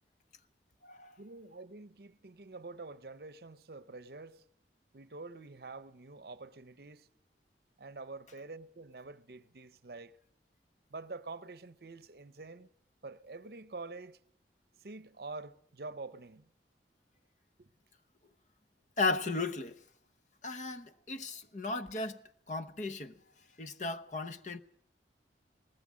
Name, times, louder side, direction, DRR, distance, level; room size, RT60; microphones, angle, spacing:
voice 1, 1.2-4.4 4.9-7.1 7.8-10.1 10.9-12.7 13.0-14.2 14.8-16.5 17.6-17.7, right 3 dB, 60° right, 0.7 m, -47 dB
voice 2, 19.0-19.8 20.4-22.2 22.5-23.1 23.6-24.6, left 3 dB, 45° left, 0.9 m, -35 dB
20.0 x 18.0 x 7.5 m
head